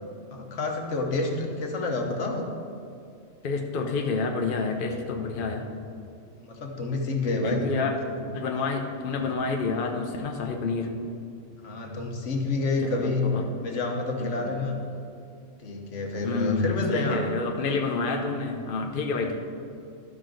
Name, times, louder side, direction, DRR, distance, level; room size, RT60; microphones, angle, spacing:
voice 1, 0.3-2.5 6.4-7.7 9.1-9.2 11.6-13.3 13.6-14.8 15.6-17.2, left 3 dB, 70° left, 1 dB, 1.4 m, -28 dB
voice 2, 3.4-5.7 7.4-8.0 8.3-11.0 12.8-13.5 14.2-14.5 16.2-19.4, left 4 dB, 50° left, 3 dB, 0.8 m, -29 dB
12.5 x 6.0 x 3.8 m, 2.5 s
omnidirectional pair, 1.3 m